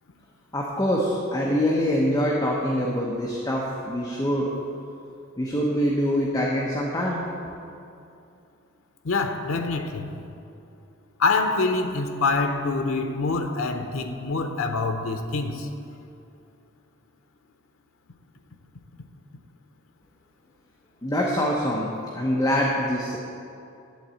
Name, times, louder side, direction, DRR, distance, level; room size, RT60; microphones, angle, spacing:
voice 1, 0.5-4.5 5.4-7.2 21.0-21.9 22.1-23.2, equal, 20° left, 0.8 m, -24 dB
voice 2, 9.0-10.2 11.2-15.7, left 3 dB, 85° left, 0.8 m, -25 dB
11.5 x 4.0 x 7.7 m
head